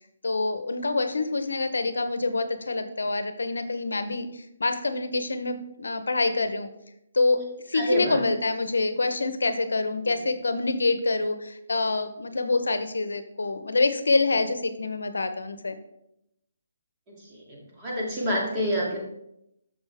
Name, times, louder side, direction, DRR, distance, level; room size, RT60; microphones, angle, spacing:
voice 1, 0.2-6.7 7.1-7.4 7.7-15.8, left 3 dB, 90° left, 10 dB, 0.7 m, -26 dB
voice 2, 7.7-8.2 17.1-19.0, equal, 20° right, -4 dB, 2.3 m, -28 dB
7.3 x 6.4 x 3.4 m, 0.81 s
hypercardioid pair, 160°, 0 cm